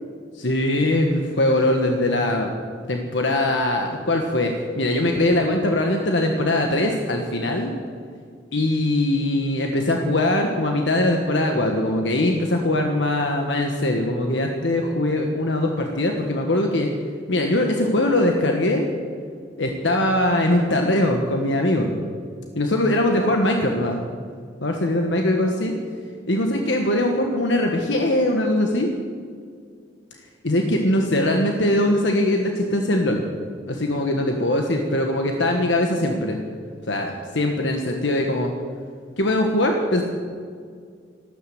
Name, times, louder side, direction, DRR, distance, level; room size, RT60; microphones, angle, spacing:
voice 1, 0.3-2.5 2.9-7.7 8.5-16.9 17.3-18.9 19.6-21.9 22.5-24.0 24.6-25.7 26.3-28.9 30.4-33.2 33.7-36.4 36.9-38.5 39.2-40.0, left 1 dB, 75° left, 3 dB, 1.4 m, -21 dB
14.0 x 12.5 x 7.7 m, 2.1 s
head